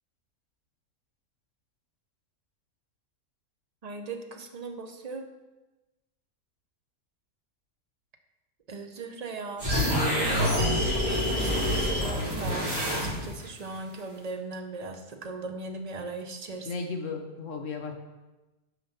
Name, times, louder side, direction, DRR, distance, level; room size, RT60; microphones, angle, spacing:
voice 1, 3.8-5.2 8.7-16.7, right 3 dB, 40° right, 5 dB, 0.5 m, -38 dB
sound 1, 9.6-13.4, left 1 dB, 70° right, 3.3 m, -26 dB
voice 2, 16.6-17.9, left 4 dB, 60° left, 4 dB, 1.1 m, -34 dB
7.2 x 5.1 x 5.7 m, 1.1 s
omnidirectional pair, 1.6 m